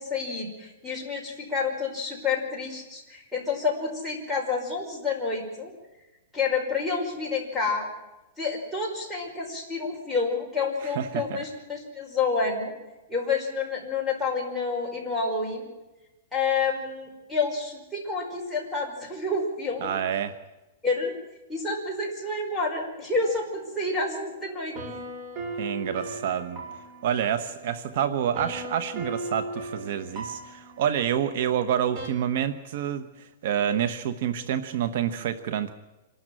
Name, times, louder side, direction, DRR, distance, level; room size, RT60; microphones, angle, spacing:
voice 1, 0.0-5.7 6.3-7.9 8.4-12.7 13.1-15.7 16.3-20.0 20.8-21.1 21.5-24.7, left 4 dB, ahead, -5 dB, 5.3 m, -29 dB
voice 2, 10.8-11.4 19.8-20.4 25.6-26.6 27.0-35.7, right 9 dB, 55° right, 12 dB, 1.2 m, -28 dB
sound 1, 23.2-32.1, right 2 dB, 35° right, 5.3 m, -39 dB
26.5 x 12.5 x 9.1 m, 1.1 s
supercardioid pair, 160°, 0 cm